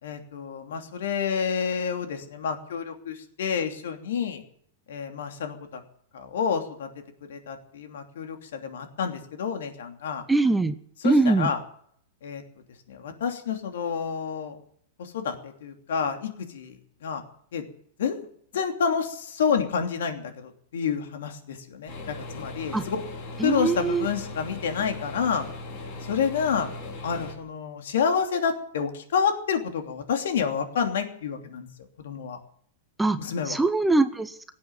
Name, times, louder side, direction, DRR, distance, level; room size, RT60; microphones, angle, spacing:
voice 1, 0.0-4.4 4.9-5.8 6.1-6.9 7.3-10.2 11.0-11.6 12.2-12.4 12.9-14.6 15.0-16.8 17.0-17.2 17.5-17.6 18.0-18.3 18.5-23.0 23.4-25.4 26.0-26.7 27.0-31.7 32.0-32.4 33.2-33.6, left 6 dB, 80° left, 5 dB, 2.9 m, -29 dB
voice 2, 10.3-10.7 11.0-11.5 22.7-22.9 23.4-24.1 33.0-33.2 33.5-34.3, right 3 dB, 5° right, 12 dB, 0.6 m, -22 dB
sound 1, 21.9-27.3, left 2 dB, 40° left, 4.4 m, -38 dB
17.5 x 8.6 x 9.1 m, 0.65 s
supercardioid pair, 165°, 0 cm